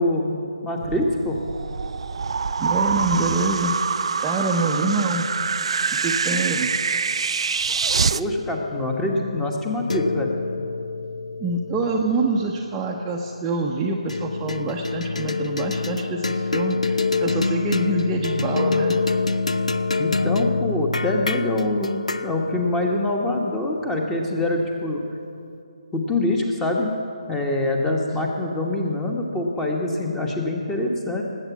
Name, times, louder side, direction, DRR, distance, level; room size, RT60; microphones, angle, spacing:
voice 1, 0.0-1.4 8.1-10.3 20.0-25.0 25.9-26.9 27.3-31.2, left 2 dB, 10° left, 1 dB, 1.2 m, -24 dB
sound 1, 0.8-8.2, right 5 dB, 55° right, 0.4 m, -25 dB
voice 2, 2.6-5.3 6.0-6.7 11.4-19.0, right 3 dB, 10° right, -2 dB, 0.7 m, -26 dB
sound 2, 8.3-12.9 14.1-24.6, left 3 dB, 80° left, 0.6 m, -27 dB
19.0 x 8.2 x 7.2 m, 2.6 s
figure-of-eight pair, 150°, 4 cm